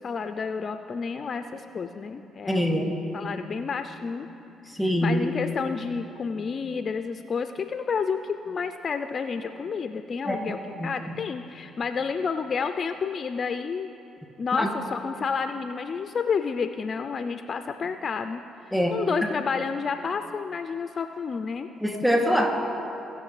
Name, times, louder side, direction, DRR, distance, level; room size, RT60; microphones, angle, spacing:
voice 1, 0.0-4.3 5.0-13.9 14.4-18.4 18.9-21.7, left 5 dB, 50° left, 8 dB, 0.4 m, -30 dB
voice 2, 2.5-2.8 4.8-5.2 10.3-10.4 10.8-10.9 14.6-14.7 18.7-19.0 21.8-22.5, equal, 5° right, 0 dB, 2.4 m, -23 dB
18.5 x 6.5 x 3.2 m, 2.8 s
supercardioid pair, 60°, 0 cm